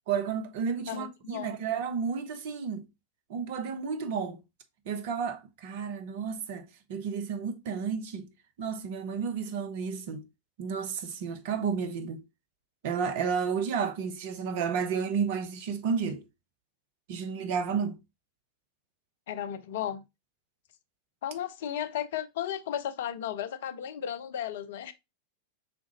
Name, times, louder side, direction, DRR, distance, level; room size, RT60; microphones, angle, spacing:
voice 1, 0.1-2.9 3.3-4.4 4.9-8.3 8.6-10.3 10.6-12.2 12.8-16.2 17.1-18.0, right 6 dB, 50° right, 0.7 m, -32 dB
voice 2, 0.9-1.5 19.3-20.0 21.2-24.9, left 10 dB, 55° left, 0.4 m, -34 dB
5.0 x 3.6 x 2.8 m
figure-of-eight pair, 90°, 0 cm